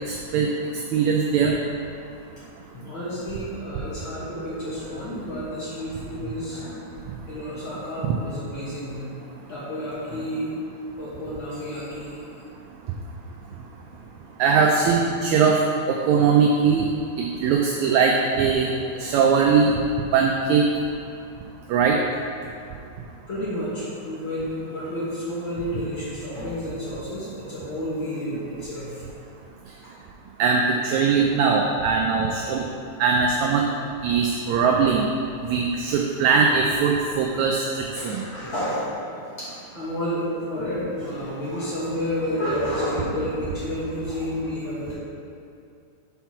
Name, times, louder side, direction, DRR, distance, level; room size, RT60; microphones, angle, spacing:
voice 1, 0.1-0.5 0.9-1.6 14.4-15.6 15.9-16.9 17.2-19.7 20.1-20.7 21.7-22.0 30.4-32.6 33.0-33.6 34.0-35.1 35.5-38.2, right 5 dB, 80° right, 0 dB, 1.7 m, -20 dB
voice 2, 2.7-6.8 7.3-9.0 9.5-10.5 11.0-12.2 16.0-16.1 23.3-29.0 29.8-29.9 37.9-38.9 39.4-44.9, equal, 50° left, -9 dB, 1.7 m, -30 dB
5.9 x 4.5 x 5.8 m, 2.5 s
omnidirectional pair, 3.5 m